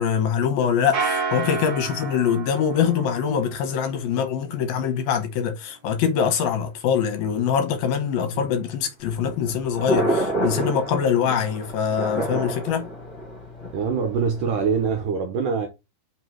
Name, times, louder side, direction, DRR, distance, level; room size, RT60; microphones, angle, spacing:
voice 1, 0.0-12.9, left 7 dB, 75° left, 2.6 m, -23 dB
sound 1, 0.9-3.6, right 4 dB, 50° right, 1.1 m, -30 dB
Thunder, 9.0-15.0, right 1 dB, 30° left, 2.8 m, -29 dB
voice 2, 13.7-15.7, right 6 dB, 70° right, 2.1 m, -24 dB
5.8 x 4.4 x 4.5 m
omnidirectional pair, 4.7 m